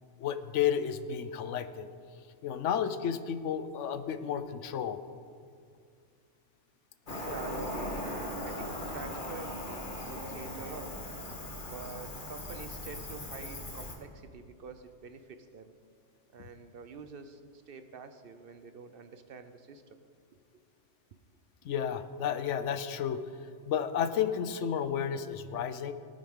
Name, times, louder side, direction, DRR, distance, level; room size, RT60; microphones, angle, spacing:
voice 1, 0.2-1.9 2.4-5.0 21.6-23.2 23.7-25.9, left 8 dB, 80° left, 11 dB, 1.0 m, -32 dB
Cricket, 7.1-13.9, left 1 dB, 45° left, 1.5 m, -39 dB
voice 2, 7.2-11.0 11.6-15.7 16.3-19.8 20.3-20.4, right 4 dB, 60° right, 9 dB, 0.8 m, -46 dB
18.0 x 9.2 x 3.6 m, 2.2 s
omnidirectional pair, 1.2 m